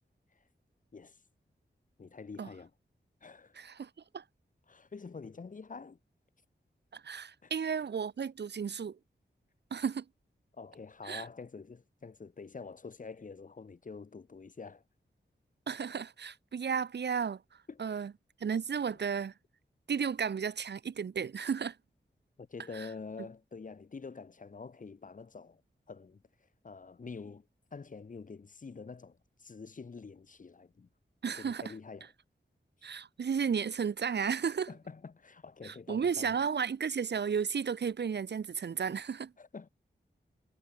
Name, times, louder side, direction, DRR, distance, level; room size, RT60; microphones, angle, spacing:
voice 1, 2.0-2.7 3.2-3.6 4.7-6.0 7.4-7.5 10.5-14.8 17.7-18.0 22.4-25.6 25.9-26.2 26.6-30.9 31.3-32.1 34.7-36.4 39.4-39.7, left 4 dB, 45° left, 0.7 m, -47 dB
voice 2, 3.6-4.2 6.9-9.0 9.7-10.0 11.0-11.2 15.7-17.4 17.8-18.1 18.4-19.3 19.9-21.7 22.7-22.9 31.2-31.7 32.8-34.7 35.6-39.3, right 6 dB, 60° right, 0.6 m, -33 dB
wide cardioid pair, 85°, 20 cm